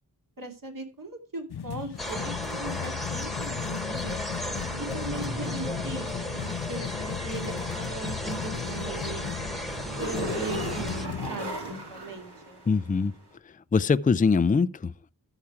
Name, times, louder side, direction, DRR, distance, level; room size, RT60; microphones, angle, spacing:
voice 1, 0.4-4.3 4.8-9.3 9.8-12.6, right 3 dB, 55° right, 2.5 m, -39 dB
sound 1, 1.5-11.3, left 9 dB, 70° left, 0.6 m, -36 dB
sound 2, 2.0-11.1, left 1 dB, ahead, 1.4 m, -35 dB
sound 3, 4.4-13.1, right 1 dB, 75° right, 2.8 m, -39 dB
voice 2, 12.7-13.1 13.4-15.1, left 5 dB, 20° left, 0.4 m, -23 dB
13.5 x 5.0 x 5.8 m
wide cardioid pair, 65°, 40 cm